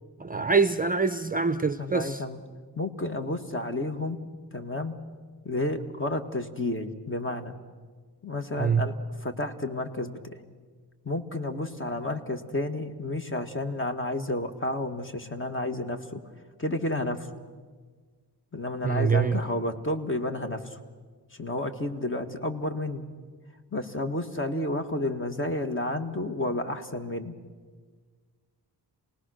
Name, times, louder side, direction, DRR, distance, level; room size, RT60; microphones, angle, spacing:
voice 1, 0.2-2.2 8.6-8.9 18.8-19.4, right 5 dB, 20° right, 11 dB, 0.6 m, -25 dB
voice 2, 1.8-2.4 2.7-4.2 4.5-4.9 5.4-7.5 8.2-8.9 9.2-10.4 11.0-16.2 16.6-17.3 18.5-20.8 21.3-23.0 23.7-27.3, left 2 dB, 30° left, 7 dB, 1.6 m, -31 dB
28.5 x 19.0 x 6.4 m, 1.5 s
wide cardioid pair, 120°, 40 cm